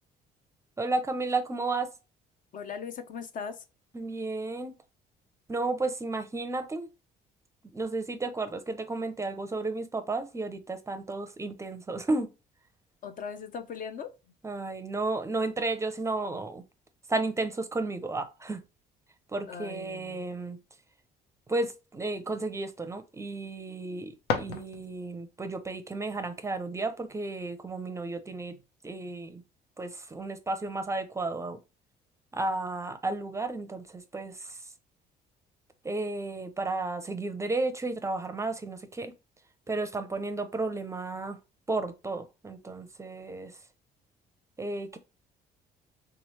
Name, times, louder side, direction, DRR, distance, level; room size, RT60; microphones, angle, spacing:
voice 1, 0.8-1.9 3.9-4.7 5.5-6.9 7.7-12.3 14.4-16.6 17.1-18.6 19.3-20.6 21.5-28.6 28.8-29.4 29.8-31.6 32.3-34.7 35.8-39.1 39.7-41.4 41.7-43.6 44.6-45.0, right 2 dB, 15° right, 0.5 m, -33 dB
voice 2, 2.5-3.6 13.0-14.1 19.5-20.2, left 6 dB, 50° left, 0.7 m, -39 dB
sound 1, 23.8-25.3, left 5 dB, 80° left, 0.8 m, -34 dB
3.4 x 3.1 x 3.0 m
cardioid pair, 110°, 17 cm